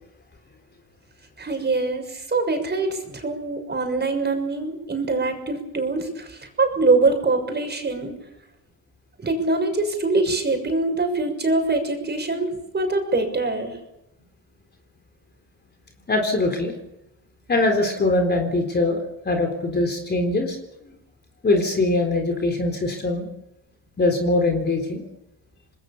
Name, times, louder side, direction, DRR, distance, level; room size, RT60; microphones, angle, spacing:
voice 1, 1.4-8.1 9.2-13.8, right 3 dB, 25° right, 4 dB, 6.6 m, -23 dB
voice 2, 16.1-16.7 17.5-19.0 19.3-20.6 21.4-23.3 24.0-25.0, left 2 dB, 25° left, 4 dB, 3.8 m, -22 dB
26.5 x 20.5 x 7.1 m, 0.89 s
cardioid pair, 105°, 38 cm